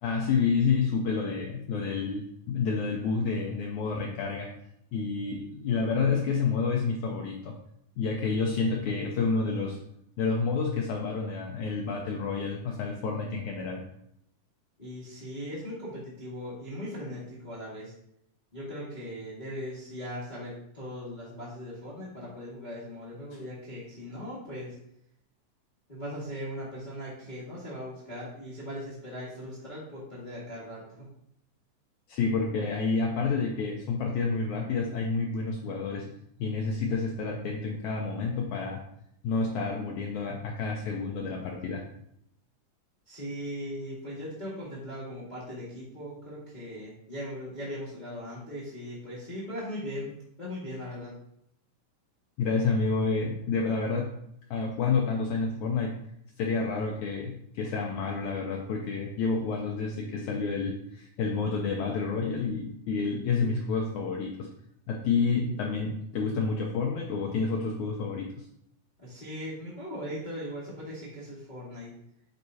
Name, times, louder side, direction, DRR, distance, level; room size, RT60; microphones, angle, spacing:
voice 1, 0.0-4.5 4.9-7.6 8.0-9.8 10.2-13.8 32.1-36.1 36.4-38.8 39.2-41.8 52.4-54.2 54.5-56.0 56.4-64.5 64.9-68.5, left 4 dB, 85° left, 0 dB, 1.7 m, -29 dB
voice 2, 14.8-17.9 18.5-24.8 25.9-31.1 43.0-50.1 50.4-51.1 69.0-71.9, equal, 55° left, -8 dB, 0.5 m, -39 dB
9.7 x 4.6 x 2.8 m, 0.74 s
omnidirectional pair, 4.2 m